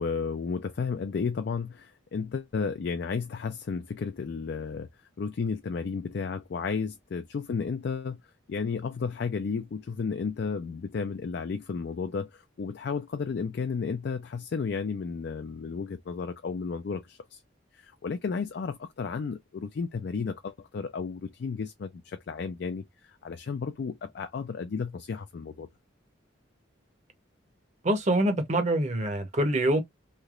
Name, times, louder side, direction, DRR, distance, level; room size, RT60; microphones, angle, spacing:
voice 1, 0.0-4.9 5.2-8.2 8.5-17.4 17.8-25.7, left 5 dB, 55° left, 0.3 m, -33 dB
voice 2, 27.8-29.8, right 1 dB, 35° right, 0.8 m, -25 dB
3.2 x 2.8 x 2.4 m
head